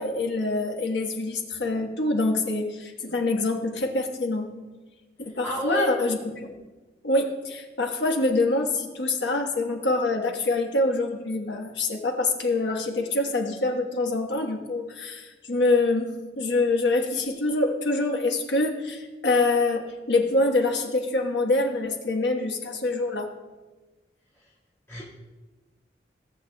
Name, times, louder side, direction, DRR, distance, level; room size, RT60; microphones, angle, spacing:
voice 1, 0.0-4.5 5.2-6.5 7.0-23.3, left 2 dB, 80° left, 2 dB, 1.4 m, -25 dB
voice 2, 5.3-5.9 24.9-25.0, equal, 15° left, -10 dB, 2.0 m, -30 dB
18.0 x 7.6 x 2.3 m, 1.2 s
head